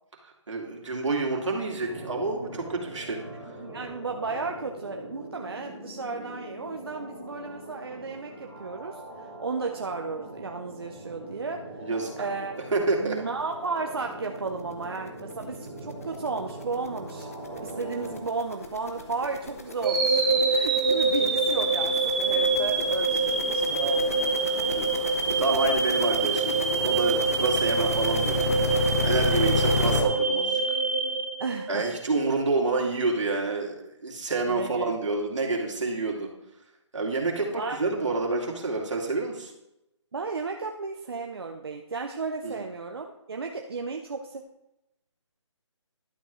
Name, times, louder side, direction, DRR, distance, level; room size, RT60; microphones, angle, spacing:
voice 1, 0.5-3.2 11.8-12.1 12.7-13.2 24.7-28.6 29.0-30.8 31.7-36.3 36.9-39.5 42.4-42.5, right 3 dB, 75° right, 0 dB, 2.5 m, -28 dB
sound 1, 1.8-18.2, right 1 dB, 5° left, 2.4 m, -42 dB
voice 2, 3.6-11.9 12.2-12.5 13.0-17.3 17.6-24.3 29.3-29.6 31.4-31.9 34.5-34.9 37.5-37.8 40.1-44.4, right 4 dB, 55° right, 3 dB, 0.7 m, -34 dB
sound 2, 14.6-14.7 15.1-15.2 15.4-30.0, left 3 dB, 30° left, 0.9 m, -32 dB
sound 3, 19.8-31.9, right 4 dB, 15° right, 0.9 m, -25 dB
11.5 x 7.5 x 3.1 m, 0.86 s
hypercardioid pair, 180°, 16 cm